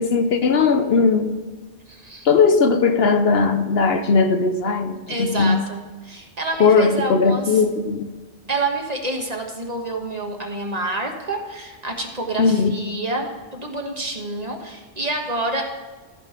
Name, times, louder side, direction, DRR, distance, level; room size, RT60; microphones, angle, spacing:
voice 1, 0.0-1.4 2.2-5.6 6.6-8.1 12.4-12.7, left 4 dB, 65° left, 7 dB, 1.0 m, -18 dB
voice 2, 1.9-2.3 5.1-5.8 6.0-7.4 8.5-15.7, right 2 dB, 35° right, 2 dB, 1.4 m, -28 dB
14.0 x 5.4 x 5.8 m, 1.3 s
omnidirectional pair, 1.2 m